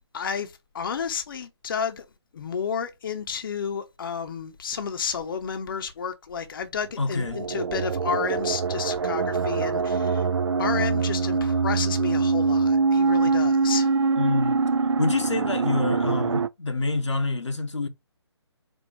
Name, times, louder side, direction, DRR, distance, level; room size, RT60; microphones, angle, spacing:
voice 1, 0.1-2.0 2.3-10.3 10.6-13.9, left 6 dB, 50° left, 0.7 m, -31 dB
voice 2, 7.0-7.4 13.2-13.5 14.2-14.6 15.0-17.9, left 3 dB, 80° left, 0.9 m, -27 dB
sound 1, 7.1-16.5, right 4 dB, 75° right, 0.5 m, -24 dB
4.4 x 2.3 x 4.5 m
figure-of-eight pair, 145°, 15 cm